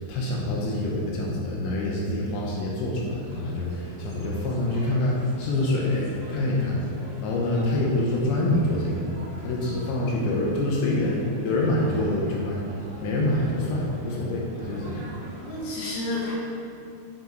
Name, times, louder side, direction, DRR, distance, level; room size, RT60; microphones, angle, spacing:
voice 1, 0.0-6.8 7.2-9.0 9.4-12.6 13.0-15.0, left 1 dB, 75° left, -2 dB, 2.9 m, -26 dB
sound 1, 3.2-15.7, right 1 dB, 50° right, 2.0 m, -44 dB
voice 2, 14.8-16.3, left 2 dB, 55° left, -7 dB, 2.9 m, -32 dB
7.4 x 7.3 x 3.9 m, 2.6 s
omnidirectional pair, 5.6 m